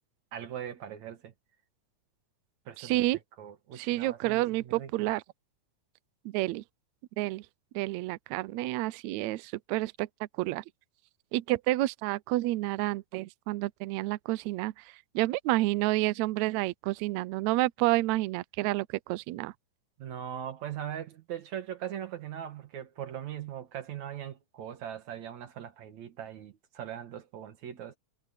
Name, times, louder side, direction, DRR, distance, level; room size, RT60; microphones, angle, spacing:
voice 1, 0.3-1.3 2.7-3.1 3.4-5.1 20.0-28.0, right 10 dB, 65° right, 2.7 m, -40 dB
voice 2, 2.8-3.2 3.8-5.2 6.3-6.6 7.2-7.4 7.8-10.6 11.3-19.5, right 18 dB, 80° right, 1.7 m, -29 dB
omnidirectional pair, 3.6 m